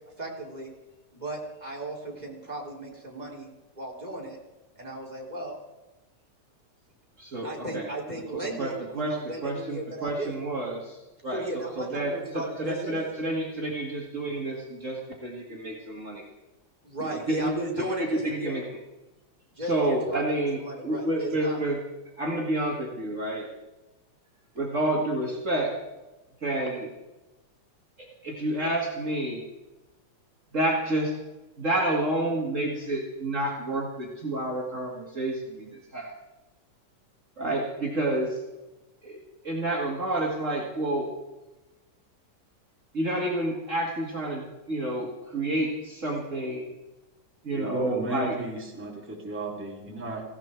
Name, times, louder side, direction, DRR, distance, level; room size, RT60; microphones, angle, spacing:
voice 1, 0.2-0.7 1.1-3.5 3.8-4.4 4.8-5.6 7.4-10.4 11.3-13.0 16.8-18.6 19.6-21.6, right 1 dB, 25° right, -2 dB, 3.9 m, -35 dB
voice 2, 7.2-7.8 8.6-11.0 11.2-12.1 12.6-16.3 17.3-17.5 18.0-18.6 19.7-21.8 22.2-23.5 24.6-25.7 26.4-26.9 28.0-29.4 30.5-31.1 31.6-36.1 37.4-38.4 39.0-41.1 42.9-46.7 47.4-48.4, right 1 dB, 45° right, -2 dB, 2.4 m, -29 dB
voice 3, 47.5-50.2, right 1 dB, 5° right, -1 dB, 2.7 m, -34 dB
19.0 x 16.5 x 4.6 m, 1.1 s
omnidirectional pair, 1.9 m